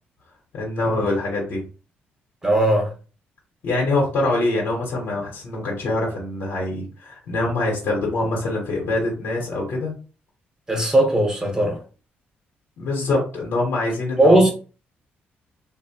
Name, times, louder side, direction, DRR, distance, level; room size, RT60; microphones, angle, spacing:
voice 1, 0.5-1.6 3.6-9.9 12.8-14.4, left 2 dB, 70° left, 0.9 m, -24 dB
voice 2, 2.4-2.9 10.7-11.8 14.2-14.5, right 1 dB, 20° right, 1.0 m, -17 dB
2.7 x 2.0 x 2.8 m
cardioid pair, 95°, 4 cm